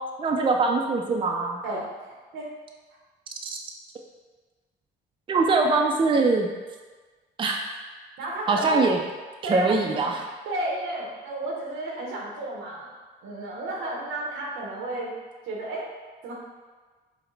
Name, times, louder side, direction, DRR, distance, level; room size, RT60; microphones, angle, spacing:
voice 1, 0.2-1.6 3.4-3.6 5.3-6.5 7.4-7.6 8.5-9.0 9.5-10.2, right 3 dB, 25° right, 2 dB, 0.4 m, -22 dB
voice 2, 1.6-2.5 8.2-8.8 9.4-12.9 13.2-15.1 15.4-15.8 16.2-16.3, right 1 dB, 90° right, -3 dB, 0.9 m, -32 dB
4.8 x 2.1 x 3.2 m, 1.4 s
cardioid pair, 90°, 20 cm